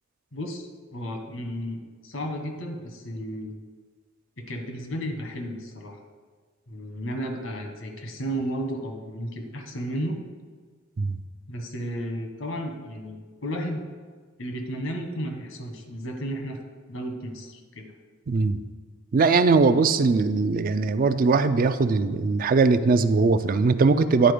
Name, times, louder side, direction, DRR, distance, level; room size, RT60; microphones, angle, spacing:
voice 1, 0.3-3.5 4.4-6.0 6.7-10.2 11.5-13.8 14.4-16.6 16.9-17.9, equal, 80° left, 4 dB, 1.3 m, -33 dB
voice 2, 18.3-18.6 19.1-24.3, right 4 dB, 45° right, 11 dB, 0.4 m, -20 dB
10.5 x 4.2 x 5.0 m, 1.5 s
head